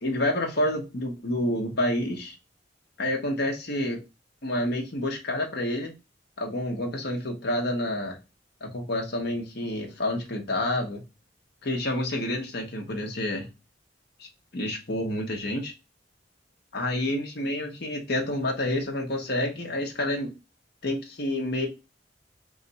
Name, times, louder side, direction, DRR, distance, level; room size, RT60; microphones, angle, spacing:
voice 1, 0.0-2.3 3.0-4.0 4.4-5.9 6.4-8.2 8.7-11.0 11.6-13.5 14.5-15.7 16.7-20.3 20.8-21.7, left 1 dB, 60° left, 2 dB, 1.1 m, -28 dB
3.2 x 2.6 x 3.9 m, 0.26 s
head